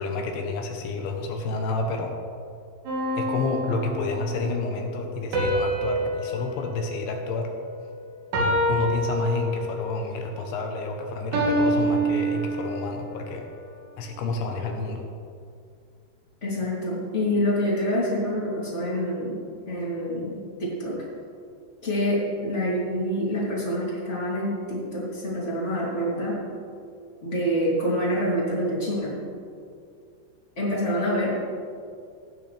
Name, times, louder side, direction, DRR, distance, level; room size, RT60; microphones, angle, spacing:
voice 1, 0.0-2.1 3.2-7.5 8.7-13.4 14.0-15.0, left 3 dB, 75° left, 2 dB, 3.2 m, -29 dB
sound 1, 2.9-4.3 5.3-7.8 8.3-9.9 11.3-13.0, right 1 dB, 70° right, 4.0 m, -27 dB
voice 2, 16.4-19.4 19.7-21.0 21.8-26.4 27.2-29.1 30.6-31.4, equal, 20° left, -7 dB, 2.1 m, -26 dB
18.0 x 9.2 x 3.4 m, 2.3 s
omnidirectional pair, 5.7 m